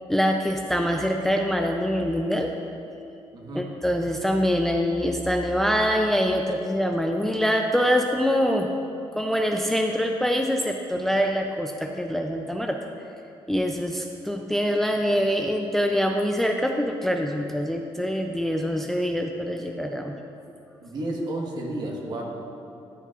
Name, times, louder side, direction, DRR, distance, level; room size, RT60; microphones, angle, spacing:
voice 1, 0.1-2.5 3.5-8.7 9.2-12.8 13.5-20.1, equal, 5° left, 3 dB, 0.4 m, -24 dB
voice 2, 3.3-3.7 20.8-22.2, right 1 dB, 50° right, -1 dB, 1.4 m, -31 dB
13.0 x 8.2 x 2.4 m, 2.7 s
cardioid pair, 125°, 10 cm